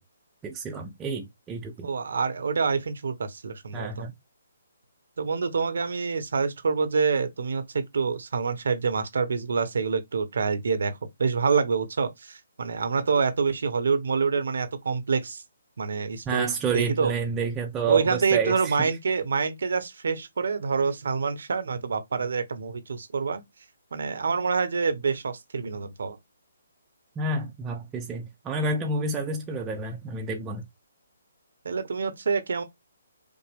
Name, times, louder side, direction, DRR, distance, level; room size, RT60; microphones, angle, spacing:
voice 1, 0.4-1.9 3.7-4.1 16.3-18.8 27.2-30.6, right 4 dB, 15° right, 0.5 m, -29 dB
voice 2, 1.8-4.1 5.2-15.4 15.8-16.5 16.7-17.1 17.9-23.4 23.9-26.2 31.6-32.6, right 5 dB, 60° right, 0.8 m, -26 dB
5.2 x 2.1 x 3.4 m
figure-of-eight pair, 135°, 0 cm